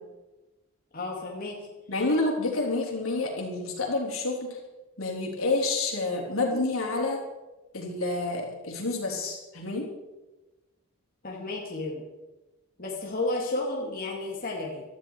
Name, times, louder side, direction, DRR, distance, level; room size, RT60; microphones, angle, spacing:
voice 1, 0.9-1.7 11.2-12.0 12.8-14.8, left 2 dB, 40° left, -2 dB, 2.8 m, -32 dB
voice 2, 1.9-4.6 5.0-7.2 7.7-9.9, left 2 dB, 75° left, 0 dB, 3.9 m, -28 dB
18.0 x 13.5 x 4.9 m, 1.1 s
head